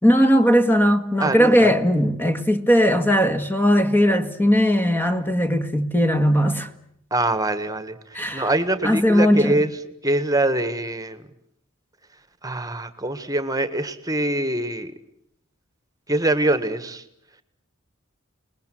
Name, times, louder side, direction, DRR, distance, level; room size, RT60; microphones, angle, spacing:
voice 1, 0.0-6.7 8.1-8.5 8.8-9.6, equal, 10° left, 1.7 m, -18 dB
voice 2, 1.2-1.7 7.1-8.0 8.3-9.7 10.0-11.2 12.4-14.9 16.1-17.0, right 1 dB, 15° right, 1.7 m, -23 dB
29.0 x 20.5 x 7.7 m
head